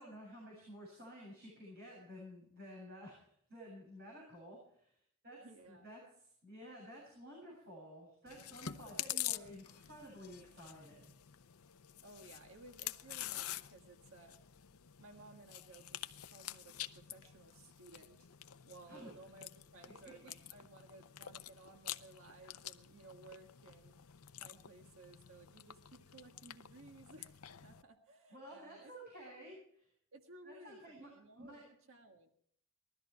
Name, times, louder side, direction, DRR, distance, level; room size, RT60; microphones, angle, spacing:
voice 1, 0.0-4.9 5.2-11.2 18.9-19.1 20.2-20.3 28.3-29.9 30.4-31.1 31.4-31.6, equal, 45° right, -4 dB, 7.8 m, -53 dB
voice 2, 5.4-5.9 12.0-14.4 15.0-18.3 18.7-24.0 24.4-27.4 27.6-28.9 29.2-29.5 30.1-31.6 31.9-32.3, right 2 dB, 70° right, 4 dB, 1.6 m, -58 dB
Chewing mastication, 8.3-27.8, left 12 dB, 90° left, 0.7 m, -48 dB
20.5 x 13.5 x 4.6 m, 0.66 s
head